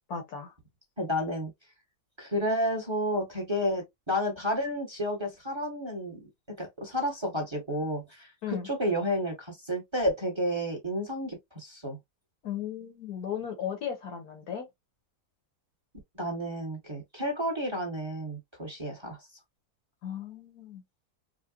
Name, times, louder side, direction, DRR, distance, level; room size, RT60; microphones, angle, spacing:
voice 1, 0.1-0.5 8.4-8.7 12.4-14.7 20.0-20.8, left 8 dB, 75° left, 1.7 m, -36 dB
voice 2, 1.0-1.5 2.2-6.2 6.6-12.0 16.1-19.2, equal, 20° right, 1.3 m, -31 dB
4.8 x 2.3 x 2.4 m
omnidirectional pair, 1.7 m